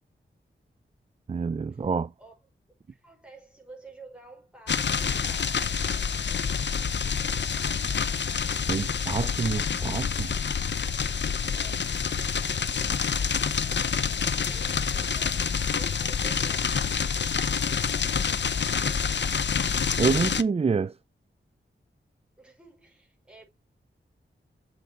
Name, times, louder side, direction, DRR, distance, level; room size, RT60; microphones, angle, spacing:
voice 1, 1.3-2.1 8.7-10.3 20.0-20.9, right 5 dB, 30° right, 0.4 m, -27 dB
voice 2, 2.9-5.7 11.5-12.0 14.5-16.8 22.4-23.5, right 3 dB, 5° right, 5.5 m, -50 dB
sound 1, 4.7-20.4, left 6 dB, 60° left, 0.7 m, -27 dB
7.8 x 6.0 x 4.4 m
wide cardioid pair, 75°, 21 cm